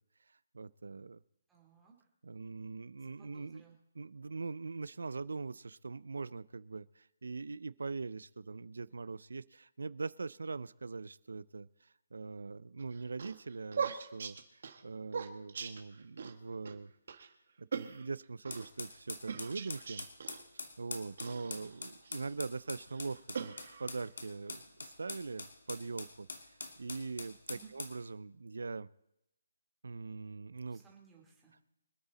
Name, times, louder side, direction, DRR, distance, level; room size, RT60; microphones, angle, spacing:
voice 1, 0.5-1.2 2.2-3.6 4.0-16.9 17.6-20.1 20.8-23.5 23.8-28.9 29.8-30.8, right 4 dB, 90° right, 18 dB, 0.5 m, -42 dB
voice 2, 1.5-2.1 3.0-3.8 27.5-27.7 30.7-31.6, right 7 dB, 5° right, -2 dB, 2.5 m, -60 dB
sound 1, 12.8-16.3 16.7-16.8 17.1-17.3 17.7-18.7 19.3-20.4 21.2-22.3 22.9-24.1, right 6 dB, 50° right, 1.6 m, -41 dB
sound 2, 18.5-28.0, left 3 dB, 90° left, 2.5 m, -44 dB
25.0 x 8.9 x 4.1 m, 0.85 s
hypercardioid pair, 175°, 0 cm